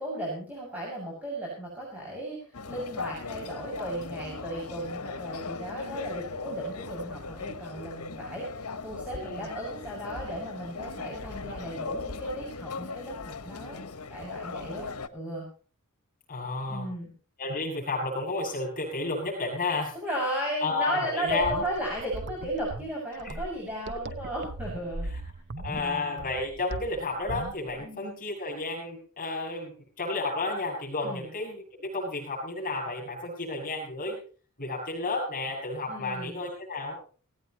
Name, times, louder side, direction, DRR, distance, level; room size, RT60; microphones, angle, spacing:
voice 1, 0.0-14.9 15.1-15.5 16.6-17.1 19.9-25.1 25.7-26.2 27.8-28.0 31.0-31.3 35.9-36.4, right 1 dB, 5° right, -4 dB, 6.6 m, -35 dB
sound 1, 2.5-15.1, left 4 dB, 75° left, 1.3 m, -38 dB
voice 2, 9.1-9.5 16.3-16.9 17.4-19.9 20.6-21.7 23.2-23.3 25.1-25.2 25.6-29.7 30.0-34.2 34.6-37.0, left 3 dB, 40° left, 0 dB, 7.5 m, -32 dB
sound 2, 21.3-27.8, right 2 dB, 55° right, 1.0 m, -39 dB
17.5 x 17.5 x 3.0 m, 0.40 s
head